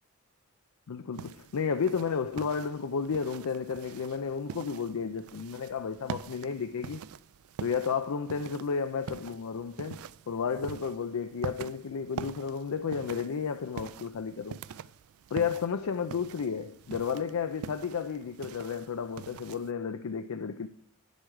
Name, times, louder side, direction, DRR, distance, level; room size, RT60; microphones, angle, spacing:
voice 1, 0.9-7.0 7.6-14.6 15.3-20.7, left 6 dB, 85° left, 0.5 m, -32 dB
sound 1, 1.1-19.7, right 7 dB, 75° right, 0.3 m, -45 dB
9.0 x 8.1 x 4.8 m
head